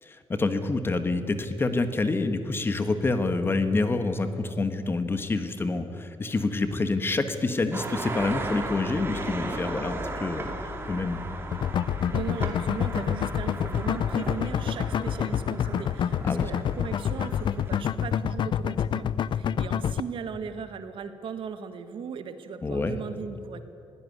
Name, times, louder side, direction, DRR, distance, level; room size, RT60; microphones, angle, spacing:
voice 1, 0.0-11.2 16.2-16.4 22.6-23.0, left 3 dB, 25° left, 9 dB, 1.3 m, -27 dB
sound 1, 7.7-17.8, right 2 dB, 25° right, 2.4 m, -37 dB
sound 2, 8.2-14.7, left 6 dB, 70° left, 2.3 m, -44 dB
sound 3, 11.5-20.0, left 9 dB, 55° left, 0.6 m, -27 dB
voice 2, 12.1-19.1 19.3-23.6, right 6 dB, 60° right, 10 dB, 1.6 m, -37 dB
21.5 x 16.5 x 9.6 m, 2.7 s
wide cardioid pair, 165°, 10 cm